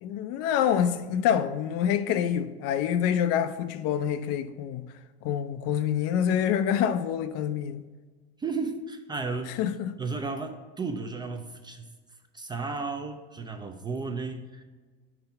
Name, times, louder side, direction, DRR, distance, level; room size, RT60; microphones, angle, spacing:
voice 1, 0.0-4.9 5.2-7.8 9.6-10.0, left 9 dB, 50° left, 0.5 m, -26 dB
voice 2, 8.4-9.6 10.0-11.9 12.3-14.6, right 4 dB, 15° right, 0.4 m, -34 dB
5.9 x 3.4 x 5.5 m
supercardioid pair, 105°, 32 cm